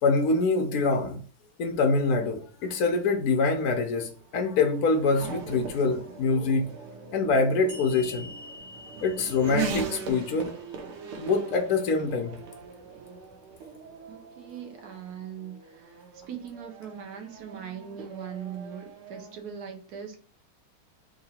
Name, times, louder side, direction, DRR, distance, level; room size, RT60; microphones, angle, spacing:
voice 1, 0.0-1.2 1.6-6.7 7.1-8.3 9.0-10.5 11.2-12.3, left 3 dB, 75° left, 3 dB, 0.8 m, -25 dB
Race car auto racing / Accelerating revving vroom, 3.2-19.4, right 5 dB, 85° right, 1.7 m, -40 dB
sound 1, 7.7-11.1, left 2 dB, 30° right, 1.6 m, -47 dB
voice 2, 14.1-20.2, right 8 dB, 65° right, 5 dB, 1.1 m, -40 dB
3.8 x 2.9 x 4.2 m, 0.43 s
omnidirectional pair, 2.3 m